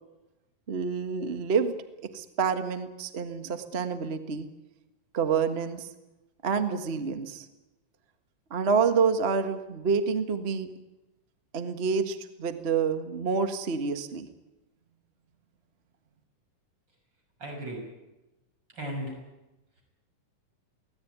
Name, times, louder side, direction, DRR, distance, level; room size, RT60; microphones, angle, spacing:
voice 1, 0.7-1.7 2.1-4.5 5.1-5.9 6.4-7.5 8.5-10.7 11.5-14.3, right 5 dB, 50° right, 8 dB, 0.7 m, -28 dB
voice 2, 17.4-17.8 18.7-19.2, right 1 dB, 30° right, 2 dB, 7.0 m, -35 dB
24.0 x 18.0 x 9.4 m, 1.0 s
omnidirectional pair, 3.9 m